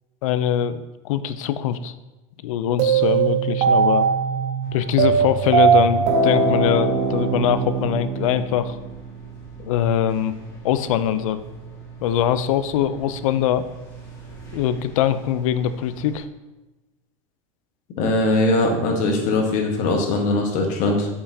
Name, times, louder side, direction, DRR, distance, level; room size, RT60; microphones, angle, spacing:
voice 1, 0.2-1.9 2.4-4.1 4.7-8.8 9.6-10.3 10.6-11.4 12.0-13.7 14.5-16.3, left 10 dB, 85° left, 13 dB, 0.4 m, -22 dB
sound 1, 2.8-9.0, right 5 dB, 40° right, 0.7 m, -20 dB
sound 2, 4.6-16.2, right 6 dB, 20° left, 1.7 m, -41 dB
voice 2, 18.0-21.1, left 2 dB, 45° left, 1 dB, 1.3 m, -21 dB
6.7 x 5.6 x 2.7 m, 1.1 s
supercardioid pair, 150°, 17 cm